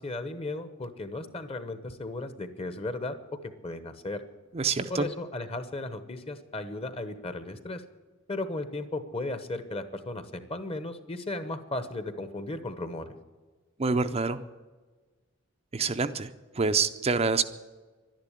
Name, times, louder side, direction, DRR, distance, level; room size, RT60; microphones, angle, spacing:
voice 1, 0.0-3.2 3.4-4.2 4.9-7.8 8.3-10.2 10.5-13.2, left 2 dB, 30° left, 11 dB, 1.0 m, -35 dB
voice 2, 4.5-5.1 13.8-14.4 15.7-16.3 16.6-17.4, right 4 dB, 30° right, 8 dB, 0.5 m, -26 dB
12.0 x 10.5 x 9.9 m, 1.3 s
head